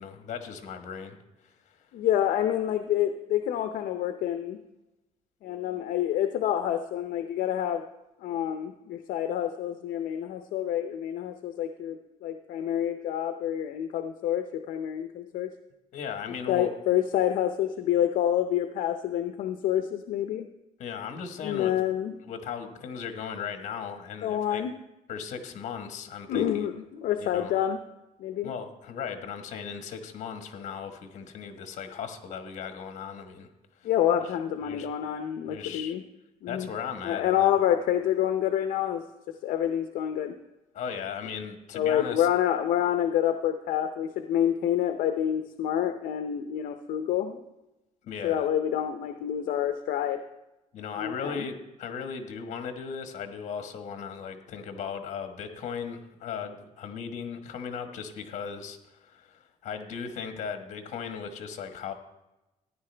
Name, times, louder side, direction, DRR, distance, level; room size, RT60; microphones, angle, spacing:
voice 1, 0.0-1.8 15.9-16.7 20.8-21.7 22.3-24.6 25.1-26.7 27.2-27.5 28.4-33.5 33.8-33.9 34.6-34.9 35.4-35.9 36.5-37.5 40.7-42.3 48.0-48.5 50.7-61.9, left 6 dB, 55° left, 6 dB, 1.3 m, -37 dB
voice 2, 1.9-4.6 5.4-7.8 8.2-15.5 16.5-20.5 21.4-22.1 24.2-24.7 26.3-27.8 28.2-28.5 33.8-36.0 36.4-36.7 37.0-39.0 39.4-40.3 41.7-47.4 48.2-50.2 51.0-51.5, left 10 dB, 70° left, 7 dB, 0.6 m, -27 dB
14.5 x 10.0 x 3.3 m, 0.98 s
cardioid pair, 145°, 15 cm